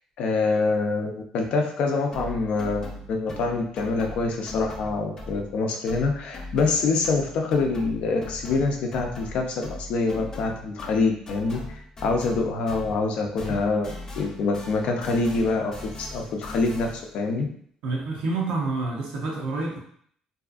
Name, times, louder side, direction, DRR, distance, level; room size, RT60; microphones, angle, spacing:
voice 1, 0.2-17.5, left 3 dB, 70° left, 2 dB, 0.5 m, -25 dB
sound 1, 2.1-5.6 5.9-13.1 13.4-17.2, left 1 dB, 30° left, 0.6 m, -40 dB
voice 2, 17.8-19.8, right 3 dB, 80° right, -2 dB, 0.6 m, -28 dB
2.6 x 2.4 x 2.4 m, 0.62 s
cardioid pair, 90°, 2 cm